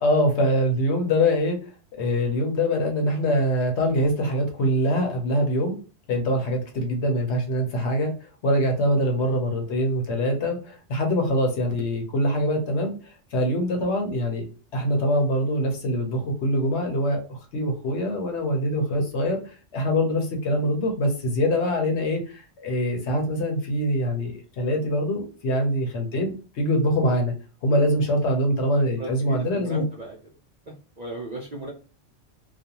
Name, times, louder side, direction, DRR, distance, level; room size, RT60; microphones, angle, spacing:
voice 1, 0.0-1.6 2.0-5.8 6.1-14.5 14.7-27.3 27.6-29.8, equal, 70° left, 3 dB, 1.0 m, -24 dB
voice 2, 29.0-30.2 30.7-31.7, right 2 dB, 55° right, -2 dB, 0.4 m, -36 dB
2.4 x 2.3 x 2.8 m, 0.36 s
omnidirectional pair, 1.2 m